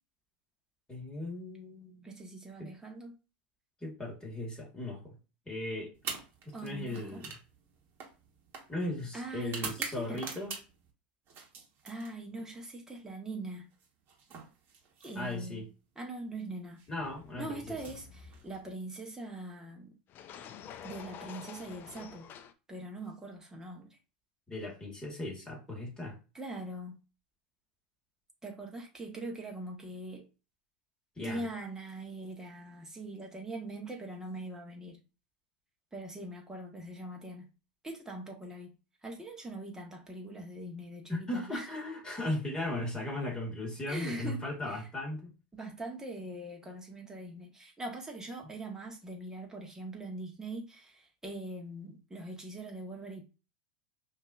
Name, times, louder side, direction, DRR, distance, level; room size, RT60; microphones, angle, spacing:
voice 1, 0.9-2.1 2.6-2.7 3.8-5.2 5.5-5.9 6.5-7.2 8.7-10.6 15.2-15.7 16.9-17.8 24.5-26.2 31.2-31.5 41.1-45.3, left 1 dB, 15° left, 2.1 m, -37 dB
voice 2, 2.0-3.2 6.5-7.2 9.1-10.2 11.8-13.7 15.0-15.6 16.0-16.8 17.4-20.0 20.8-22.3 22.7-24.0 26.3-27.0 28.4-30.2 31.2-35.0 35.9-37.5 37.8-38.7 39.0-41.7 43.9-44.4 44.7-44.8 45.5-53.2, right 2 dB, 10° right, 1.3 m, -42 dB
sound 1, 5.9-10.9 11.3-12.5 13.7-15.5 16.6-16.9 17.7-18.8, right 5 dB, 40° right, 1.3 m, -44 dB
sound 2, 17.0-18.7 20.1-22.5, left 8 dB, 40° left, 0.5 m, -49 dB
5.1 x 2.8 x 2.5 m
hypercardioid pair, 105°, 5 cm